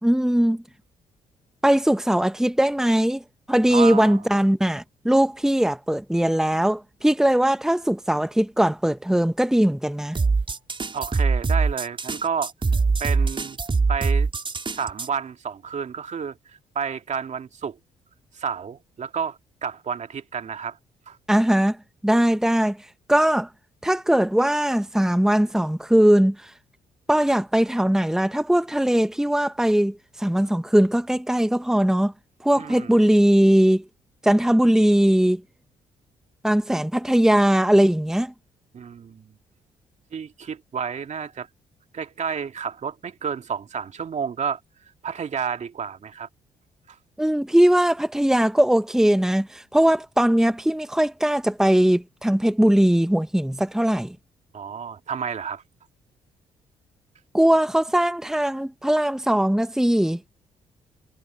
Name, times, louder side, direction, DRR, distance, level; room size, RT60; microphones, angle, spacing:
voice 1, 0.0-0.6 1.6-3.2 3.5-10.2 21.3-21.8 22.0-22.8 23.1-23.5 23.8-26.5 27.1-32.1 32.4-33.8 34.2-35.4 36.4-38.3 47.2-54.2 57.3-60.2, right 1 dB, 5° right, 1.3 m, -20 dB
voice 2, 3.7-4.2 10.9-12.5 13.0-13.6 13.9-14.3 14.7-17.8 18.3-20.8 21.1-21.2 32.6-32.9 38.7-39.3 40.1-41.5 41.9-44.6 45.0-46.3 46.9-47.0 54.5-55.6, right 6 dB, 50° right, 2.4 m, -30 dB
sound 1, 10.1-15.1, right 4 dB, 35° right, 5.0 m, -23 dB
hypercardioid pair, 50°, 15 cm